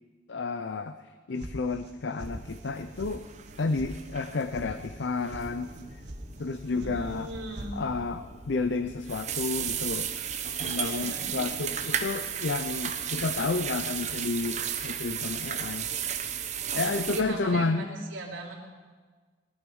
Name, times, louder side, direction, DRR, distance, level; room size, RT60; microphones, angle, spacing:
voice 1, 0.3-3.3 3.6-6.0 6.4-7.3 7.7-10.3 10.6-15.9 16.3-16.4 16.7-17.8, left 3 dB, 65° left, 10 dB, 0.6 m, -31 dB
sound 1, 1.4-1.9 2.2-2.7 3.0-3.1 3.4-3.9 4.2-4.7 5.0-5.4 5.8-6.2 6.5-7.0 7.2-7.7, right 1 dB, 60° right, 1.5 m, -42 dB
sound 2, 2.2-17.2, right 8 dB, 35° right, 0.9 m, -35 dB
voice 2, 6.6-7.8 10.8-11.3 16.5-18.6, right 1 dB, 80° right, -5 dB, 3.3 m, -39 dB
19.0 x 12.0 x 5.4 m, 1.4 s
head